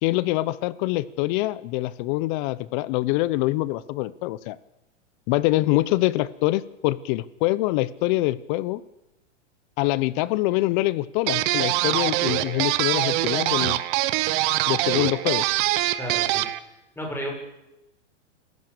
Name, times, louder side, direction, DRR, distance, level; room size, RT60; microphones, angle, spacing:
voice 1, 0.0-4.6 5.3-8.8 9.8-13.8 14.7-15.5, left 18 dB, 40° left, 19 dB, 1.0 m, -24 dB
sound 1, 11.3-16.6, right 16 dB, 45° right, 1.2 m, -24 dB
voice 2, 16.0-16.5 16.9-17.3, equal, 5° left, 1 dB, 6.7 m, -32 dB
27.0 x 15.0 x 6.8 m, 0.93 s
hypercardioid pair, 135°, 36 cm